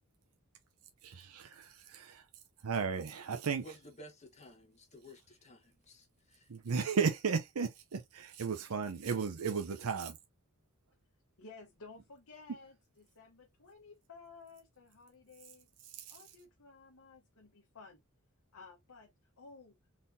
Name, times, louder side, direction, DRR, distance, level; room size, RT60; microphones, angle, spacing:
voice 1, 1.0-2.2 2.6-3.6 6.5-10.2 15.9-16.1, right 5 dB, 70° right, 0.6 m, -35 dB
voice 2, 3.5-6.5, left 1 dB, 30° left, 1.3 m, -54 dB
voice 3, 11.4-15.7 16.1-18.0 18.5-19.1 19.4-19.8, left 4 dB, 65° left, 1.0 m, -55 dB
4.2 x 3.6 x 2.6 m
head